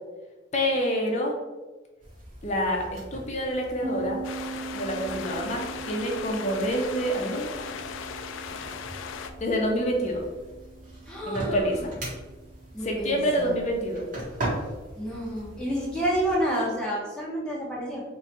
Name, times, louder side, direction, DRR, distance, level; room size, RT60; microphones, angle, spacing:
voice 1, 0.5-1.3 2.4-4.2 4.7-7.5 9.4-10.2 11.3-11.9 12.8-14.0, equal, 35° left, 1 dB, 0.6 m, -27 dB
sound 1, 2.0-16.4, right 1 dB, 40° right, 1.1 m, -40 dB
sound 2, 3.8-13.3, right 4 dB, 70° right, 1.1 m, -41 dB
sound 3, 4.2-9.3, left 6 dB, 85° left, 0.3 m, -37 dB
voice 2, 11.1-11.7 12.7-13.5 15.0-18.0, equal, 5° left, -5 dB, 0.9 m, -29 dB
3.0 x 2.3 x 4.3 m, 1.2 s
head